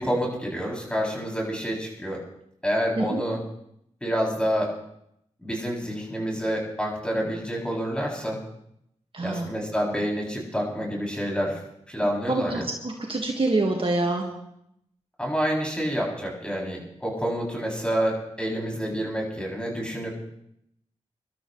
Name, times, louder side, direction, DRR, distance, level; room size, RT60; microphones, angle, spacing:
voice 1, 0.0-2.2 2.6-3.4 4.0-4.7 5.4-8.4 9.2-11.6 11.9-12.6 15.2-20.2, equal, 5° left, -2 dB, 7.6 m, -28 dB
voice 2, 9.1-9.5 12.3-14.3, right 2 dB, 45° right, 1 dB, 2.1 m, -26 dB
26.0 x 13.0 x 3.4 m, 0.76 s
cardioid pair, 50°, 13 cm